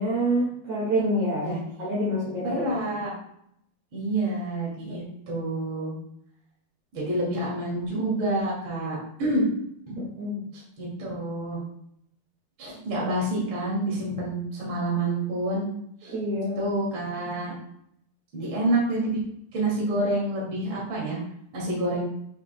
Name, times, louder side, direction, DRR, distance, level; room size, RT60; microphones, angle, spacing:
voice 1, 0.0-2.6 10.0-10.4 16.1-16.6, equal, 50° right, -7 dB, 3.0 m, -27 dB
voice 2, 2.4-3.1 3.9-5.9 6.9-9.4 9.9-10.0 10.8-11.6 12.6-15.6 16.0-16.1 16.6-17.5 18.3-19.2 19.5-21.2 21.5-22.0, right 1 dB, 35° right, -5 dB, 2.8 m, -28 dB
8.7 x 5.9 x 2.3 m, 0.71 s
omnidirectional pair, 4.6 m